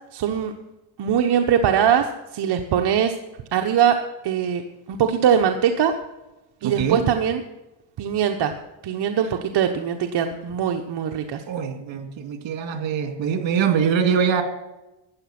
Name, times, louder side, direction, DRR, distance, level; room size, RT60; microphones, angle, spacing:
voice 1, 0.1-0.5 1.0-3.2 3.5-4.6 4.9-5.9 6.6-7.4 8.0-8.5 8.8-11.4, right 8 dB, 60° right, 4 dB, 1.1 m, -21 dB
voice 2, 6.6-7.0 11.5-14.4, right 7 dB, 75° right, 7 dB, 2.3 m, -23 dB
13.5 x 9.4 x 6.0 m, 1.0 s
cardioid pair, 105°, 45 cm